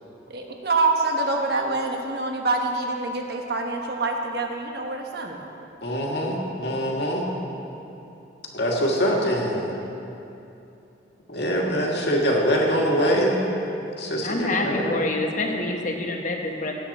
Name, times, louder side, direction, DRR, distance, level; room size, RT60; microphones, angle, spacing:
voice 1, 0.3-5.5 6.2-6.3, right 3 dB, 60° right, 2 dB, 1.2 m, -26 dB
voice 2, 5.8-7.3 8.5-9.8 11.3-13.4 14.0-15.0, equal, 65° left, -2 dB, 1.9 m, -23 dB
voice 3, 14.2-16.7, left 2 dB, 45° left, 2 dB, 1.2 m, -27 dB
17.0 x 8.9 x 4.2 m, 2.8 s
head